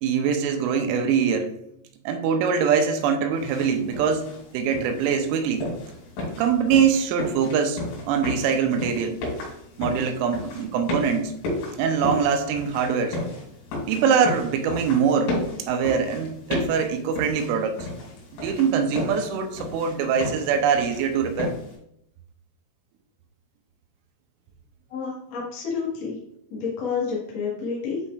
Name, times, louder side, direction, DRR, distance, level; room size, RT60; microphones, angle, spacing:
voice 1, 0.0-1.5 2.1-5.7 6.4-9.2 9.8-11.3 11.8-13.2 13.9-15.4 15.7-17.9 18.4-21.5, right 6 dB, 85° right, 6 dB, 3.1 m, -23 dB
sound 1, 3.4-21.8, left 2 dB, 75° left, 5.2 m, -34 dB
voice 2, 24.9-26.2 26.5-28.0, left 5 dB, 60° left, -6 dB, 1.8 m, -29 dB
9.8 x 4.4 x 2.5 m, 0.74 s
omnidirectional pair, 5.8 m